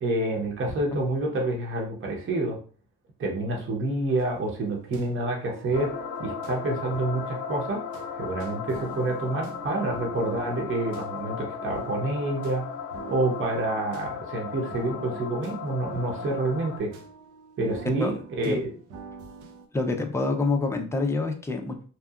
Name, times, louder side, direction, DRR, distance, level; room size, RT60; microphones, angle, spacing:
voice 1, 0.0-2.6 3.2-5.9 6.2-7.8 8.2-12.6 13.1-16.9 17.6-18.7, right 2 dB, 45° right, -1 dB, 0.8 m, -28 dB
sound 1, 4.1-19.7, right 3 dB, 80° right, 0.6 m, -46 dB
sound 2, 5.7-16.8, left 7 dB, 75° left, 0.5 m, -36 dB
voice 2, 19.7-21.9, left 3 dB, 10° left, 3 dB, 0.5 m, -27 dB
2.8 x 2.4 x 2.4 m, 0.41 s
cardioid pair, 90°, 30 cm